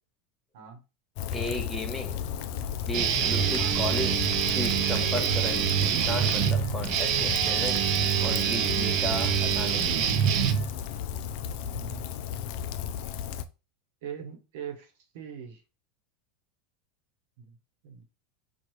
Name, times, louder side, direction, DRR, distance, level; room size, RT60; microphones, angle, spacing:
Rain, 1.2-13.4, left 9 dB, 60° left, 0.3 m, -34 dB
voice 1, 1.3-2.2 2.9-7.8 8.2-9.9, left 1 dB, 5° left, 0.8 m, -35 dB
Guitar, 2.9-11.0, right 9 dB, 55° right, 0.5 m, -26 dB
voice 2, 11.7-12.3 14.0-15.6 17.4-17.6 17.8-18.0, right 8 dB, 75° right, 0.9 m, -42 dB
4.5 x 2.4 x 3.0 m
supercardioid pair, 120°, 0 cm